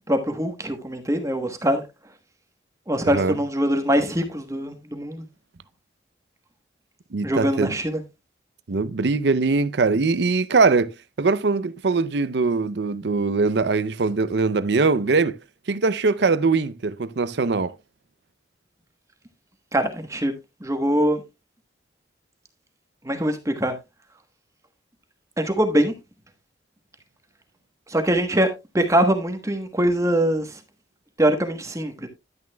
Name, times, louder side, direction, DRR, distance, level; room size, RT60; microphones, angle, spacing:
voice 1, 0.0-1.8 2.9-5.2 7.2-8.0 19.7-20.3 20.6-21.2 23.0-23.7 25.4-25.9 27.9-28.5 28.7-30.5 31.2-32.1, right 1 dB, 15° right, 1.1 m, -23 dB
voice 2, 3.0-3.4 7.1-7.7 8.7-15.4 15.7-17.7, right 4 dB, 65° right, 0.5 m, -22 dB
10.5 x 9.4 x 2.2 m
head